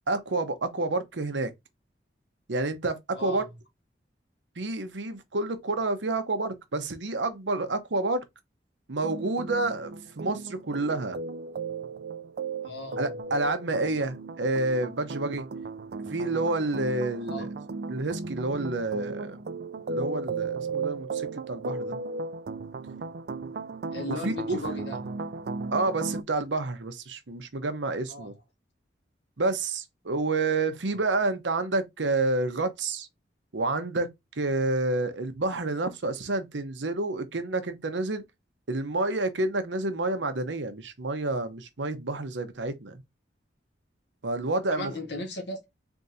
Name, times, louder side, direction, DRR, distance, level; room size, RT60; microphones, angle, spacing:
voice 1, 0.1-1.5 2.5-3.4 4.6-8.2 8.9-11.2 13.0-15.4 16.1-17.5 17.9-19.4 19.9-22.0 24.1-24.6 25.7-28.3 29.4-33.1 33.5-34.1 34.4-38.2 38.7-43.0 44.2-44.9, right 2 dB, 85° right, 0.9 m, -29 dB
sound 1, 9.0-26.2, right 4 dB, 60° right, 0.4 m, -36 dB
voice 2, 12.6-13.0 17.3-17.4 23.9-25.0 28.1-28.3 44.7-45.7, left 2 dB, 70° left, 1.6 m, -36 dB
3.9 x 3.5 x 2.6 m
head